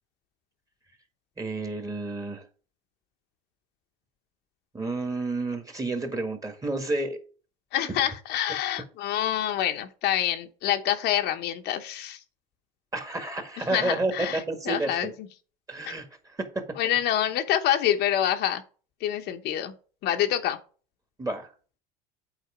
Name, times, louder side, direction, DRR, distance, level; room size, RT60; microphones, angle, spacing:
voice 1, 1.4-2.4 4.7-7.2 12.9-15.1 15.7-16.6 21.2-21.5, right 2 dB, 15° right, 7 dB, 1.7 m, -30 dB
voice 2, 7.7-12.2 13.7-15.1 15.8-15.9 16.8-18.6 19.0-19.7 20.0-20.6, left 11 dB, 55° left, 6 dB, 0.9 m, -26 dB
8.2 x 4.0 x 4.9 m, 0.39 s
hypercardioid pair, 85°, 20 cm